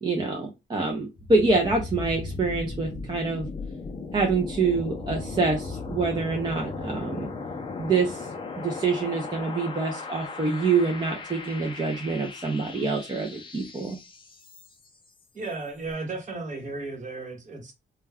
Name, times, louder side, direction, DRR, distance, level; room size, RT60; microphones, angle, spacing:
voice 1, 0.0-3.5 4.1-7.3 7.8-8.3 8.6-14.0, right 3 dB, 25° right, 0.5 m, -26 dB
sound 1, 1.2-15.0, left 3 dB, 25° left, 0.4 m, -37 dB
voice 2, 15.3-17.7, right 3 dB, 45° right, 1.0 m, -34 dB
2.2 x 2.2 x 3.3 m
wide cardioid pair, 145°, 18 cm